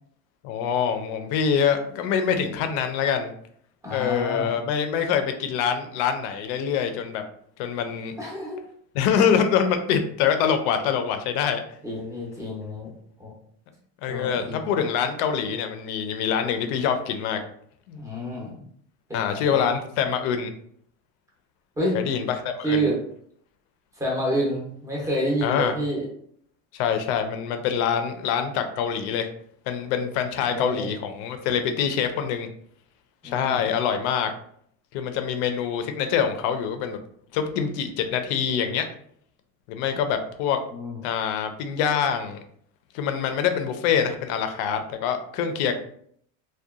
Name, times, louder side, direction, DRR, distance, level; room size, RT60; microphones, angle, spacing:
voice 1, 0.4-3.3 3.9-7.2 7.6-8.1 8.9-11.6 14.0-17.4 17.9-18.0 19.1-20.5 21.9-22.9 25.4-25.7 26.7-29.3 29.7-32.5 33.2-34.3 34.9-37.0 37.3-38.9 39.7-40.6 41.0-42.4 42.9-45.7, left 7 dB, 60° left, 7 dB, 0.5 m, -25 dB
voice 2, 3.8-4.6 8.2-8.6 11.8-12.9 13.2-13.3 14.1-14.7 18.0-18.5 19.1-19.6 21.8-22.0 22.6-23.0 24.0-26.0 30.4-30.9 33.2-33.7 40.7-41.0, right 1 dB, 10° right, -4 dB, 0.5 m, -28 dB
2.7 x 2.2 x 2.3 m, 0.64 s
cardioid pair, 155°, 39 cm